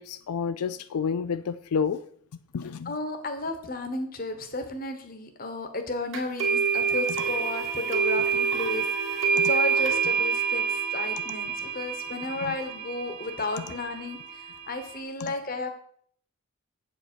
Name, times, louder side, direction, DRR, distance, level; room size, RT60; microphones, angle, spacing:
voice 1, 0.0-2.0 2.5-2.9 9.4-9.5 12.5-12.6 15.2-15.3, left 6 dB, 90° left, 13 dB, 0.4 m, -30 dB
voice 2, 2.8-15.7, left 2 dB, 40° left, 7 dB, 1.1 m, -33 dB
sound 1, 6.1-15.0, right 6 dB, 60° right, 1.9 m, -27 dB
8.0 x 7.5 x 4.5 m, 0.62 s
head